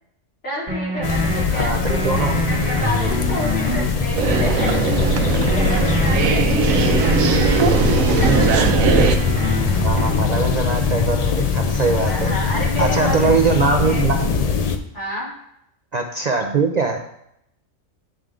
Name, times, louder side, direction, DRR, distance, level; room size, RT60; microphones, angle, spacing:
voice 1, 0.4-4.7 5.3-7.4 8.2-8.6 12.1-14.0 14.9-15.3, left 1 dB, 60° left, -9 dB, 3.4 m, -30 dB
sound 1, 0.7-1.4 1.9-3.9 4.3-6.2 6.7-8.7 9.1-10.3, right 1 dB, 30° right, 2.1 m, -26 dB
sound 2, 1.0-14.8, left 5 dB, 80° left, 0.3 m, -21 dB
voice 2, 1.5-2.4 9.8-12.3 12.8-14.2 15.9-17.1, right 4 dB, 60° right, 3 dB, 0.4 m, -21 dB
sound 3, 4.2-9.2, right 5 dB, 90° right, 1.0 m, -19 dB
10.0 x 3.7 x 3.4 m, 0.76 s
omnidirectional pair, 1.4 m